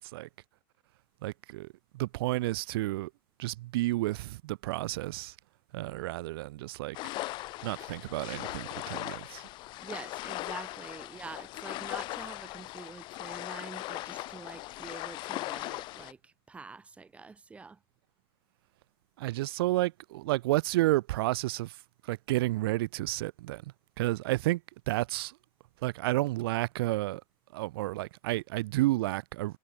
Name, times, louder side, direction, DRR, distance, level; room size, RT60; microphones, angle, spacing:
voice 1, 1.2-1.7 1.9-3.1 3.4-5.3 5.7-7.0 7.6-9.4 19.2-21.7 22.1-23.6 24.0-24.6 24.9-25.3 25.8-27.2 27.5-29.6, right 18 dB, 80° right, 4.6 m, -31 dB
sound 1, 6.9-16.1, left 19 dB, 40° left, 3.2 m, -39 dB
voice 2, 9.8-17.8, right 4 dB, 10° right, 7.3 m, -46 dB
supercardioid pair, 170°, 12 cm